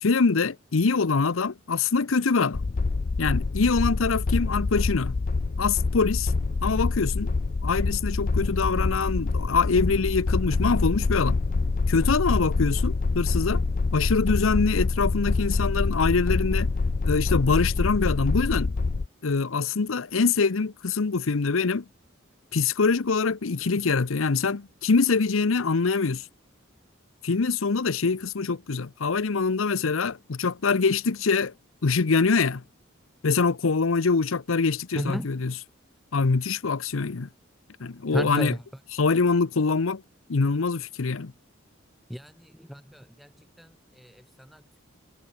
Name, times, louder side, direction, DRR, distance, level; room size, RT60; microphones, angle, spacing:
voice 1, 0.0-2.6 3.2-5.2 5.6-6.3 6.6-7.3 7.6-11.4 11.9-13.6 13.9-16.7 17.0-18.7 19.2-21.8 22.5-26.3 27.2-31.5 31.8-32.6 33.2-35.6 36.1-37.3 37.8-38.6 38.9-40.0 40.3-41.3, left 4 dB, 85° left, 0.8 m, -24 dB
sound 1, 2.5-19.1, left 3 dB, 45° left, 0.5 m, -26 dB
voice 2, 38.1-38.6 42.1-42.3 42.6-43.3 43.6-43.7 44.0-44.1 44.4-44.8, equal, ahead, 1.3 m, -32 dB
head